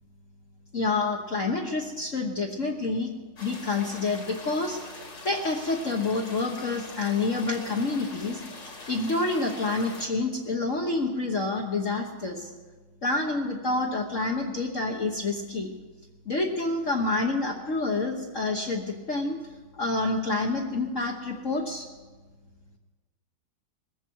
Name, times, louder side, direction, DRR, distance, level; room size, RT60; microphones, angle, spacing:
voice 1, 0.7-3.1 3.4-12.5 13.0-15.7 16.2-19.4 19.7-21.9, left 3 dB, 40° left, 0 dB, 1.4 m, -28 dB
sound 1, 3.4-10.1, left 3 dB, 55° left, 3.0 m, -43 dB
20.5 x 15.0 x 4.7 m, 1.3 s
omnidirectional pair, 2.3 m